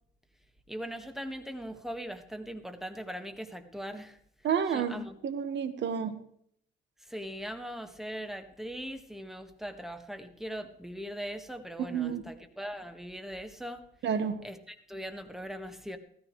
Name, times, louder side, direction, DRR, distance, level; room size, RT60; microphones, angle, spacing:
voice 1, 0.7-4.2 4.7-5.2 7.1-13.8 14.4-16.0, equal, ahead, 7 dB, 1.7 m, -40 dB
voice 2, 4.4-5.0 5.2-6.1 11.9-12.2 14.0-14.4, right 7 dB, 65° right, 9 dB, 1.5 m, -29 dB
16.0 x 14.0 x 3.2 m, 0.67 s
cardioid pair, 90°, 20 cm